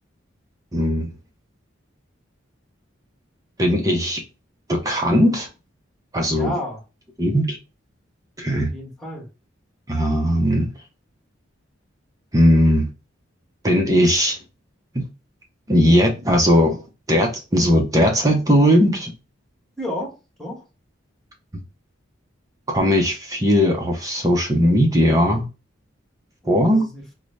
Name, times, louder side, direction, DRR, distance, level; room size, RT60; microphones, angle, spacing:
voice 1, 0.7-1.1 3.6-4.2 4.7-5.5 6.1-6.5 7.2-7.6 8.4-8.7 9.9-10.7 12.3-12.9 13.6-14.4 15.7-16.8 17.1-19.1 22.7-25.5 26.5-26.9, equal, 20° right, 0.6 m, -18 dB
voice 2, 6.3-6.8 8.7-9.3 19.8-20.6 26.4-27.0, left 1 dB, ahead, 1.1 m, -31 dB
3.8 x 2.0 x 3.1 m
head